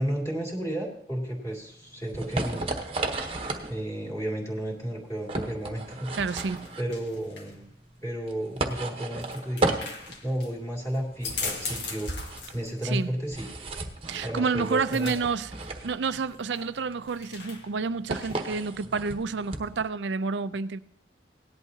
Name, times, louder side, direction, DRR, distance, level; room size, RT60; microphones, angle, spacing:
voice 1, 0.0-2.6 3.7-6.1 6.8-7.7 8.0-9.8 10.2-12.1 12.5-13.5 14.2-15.2, right 1 dB, 15° left, 2.4 m, -32 dB
sound 1, 1.5-19.8, right 2 dB, 30° right, 1.0 m, -34 dB
sound 2, 5.6-18.6, left 4 dB, 75° left, 1.8 m, -42 dB
voice 2, 6.2-6.7 12.8-13.1 14.1-15.5 15.8-20.8, right 4 dB, 80° right, 0.5 m, -29 dB
18.0 x 11.0 x 2.8 m
head